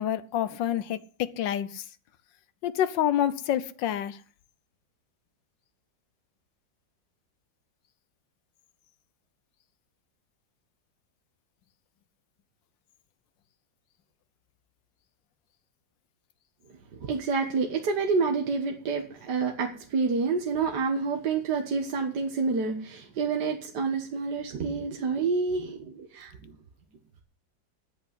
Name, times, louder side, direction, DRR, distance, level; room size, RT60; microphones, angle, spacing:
voice 1, 0.0-1.9 2.6-4.2, left 11 dB, 85° left, 1.5 m, -28 dB
voice 2, 17.0-26.5, right 4 dB, 65° right, 1.9 m, -28 dB
9.4 x 8.2 x 9.6 m
omnidirectional pair, 1.9 m